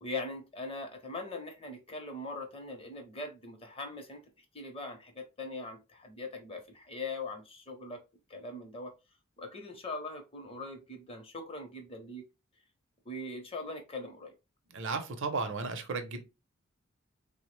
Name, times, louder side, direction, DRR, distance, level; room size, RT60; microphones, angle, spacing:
voice 1, 0.0-4.2 4.5-8.0 8.3-8.9 9.4-12.2 13.1-14.3, left 2 dB, 25° left, 0.6 m, -41 dB
voice 2, 14.7-16.2, right 4 dB, 60° right, 0.6 m, -34 dB
3.5 x 2.0 x 3.0 m
head